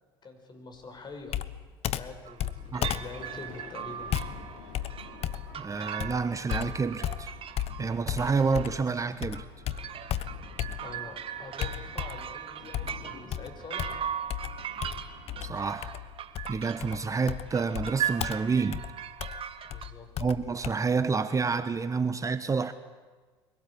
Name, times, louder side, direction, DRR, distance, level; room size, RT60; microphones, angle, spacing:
voice 1, 0.2-1.4 1.9-4.1 10.8-14.0 19.7-20.1, left 3 dB, 35° left, 5.7 m, -45 dB
Computer keyboard, 1.3-8.9 9.2-11.1 11.6-12.3 12.7-20.7, left 11 dB, 50° left, 1.0 m, -35 dB
sound 1, 2.3-2.5 2.7-19.9, right 9 dB, 45° right, 1.4 m, -39 dB
Thunder, 3.2-17.4, left 5 dB, 70° left, 3.5 m, -52 dB
voice 2, 5.6-7.3 7.8-9.4 15.4-15.9 16.5-18.8 20.2-22.7, right 5 dB, 25° right, 1.1 m, -29 dB
23.5 x 17.5 x 8.5 m
hypercardioid pair, 70°, 13 cm